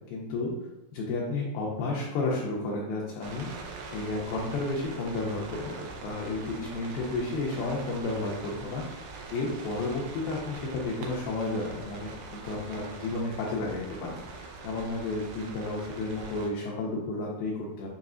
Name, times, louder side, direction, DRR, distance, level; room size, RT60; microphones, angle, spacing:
voice 1, 0.1-0.5 0.9-3.5 3.9-14.2 14.6-17.9, left 2 dB, 80° left, -3 dB, 2.1 m, -32 dB
sound 1, 3.2-16.5, right 4 dB, 80° right, 2.2 m, -43 dB
6.8 x 2.3 x 2.4 m, 1.0 s
omnidirectional pair, 4.7 m